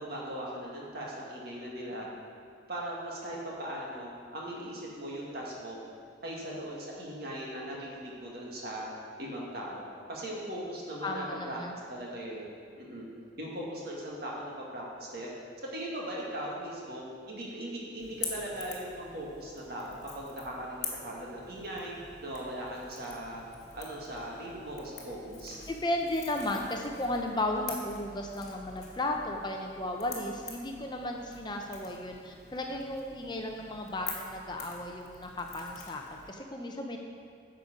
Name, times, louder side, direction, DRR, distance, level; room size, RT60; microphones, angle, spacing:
voice 1, 0.0-2.1 2.7-5.8 6.2-8.9 9.2-9.8 10.1-11.6 11.9-12.4 12.8-13.1 13.4-15.3 15.7-21.9 22.2-23.4 23.7-25.7, right 1 dB, 55° right, -4 dB, 2.0 m, -39 dB
voice 2, 11.0-11.7 25.7-37.0, left 1 dB, 25° left, 2 dB, 0.6 m, -34 dB
Crackle / Crack, 18.0-36.3, left 5 dB, 40° left, 1.6 m, -46 dB
9.9 x 6.9 x 5.1 m, 2.4 s
head